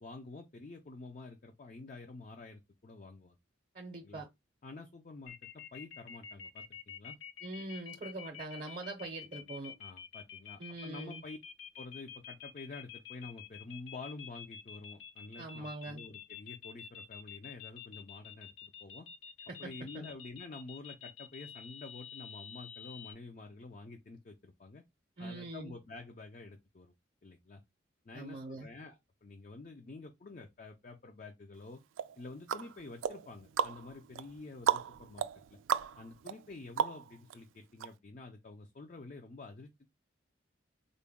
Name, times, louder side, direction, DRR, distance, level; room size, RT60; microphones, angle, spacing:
voice 1, 0.0-3.4 4.0-4.2 4.6-5.4 5.7-7.2 9.8-11.4 11.8-19.1 19.6-24.8 25.2-26.9 27.2-27.6 28.1-31.8 32.2-35.2 35.5-35.6 36.0-39.9, left 3 dB, 40° left, 0.4 m, -49 dB
voice 2, 3.7-4.3 7.4-9.7 10.6-11.2 15.4-16.0 19.5-20.0 25.2-25.7 28.1-28.7, right 2 dB, 40° right, 0.6 m, -43 dB
sound 1, 5.3-23.1, left 8 dB, 90° left, 0.6 m, -48 dB
sound 2, 32.0-37.4 37.8-37.9, right 8 dB, 85° right, 0.3 m, -35 dB
3.8 x 2.2 x 3.5 m
head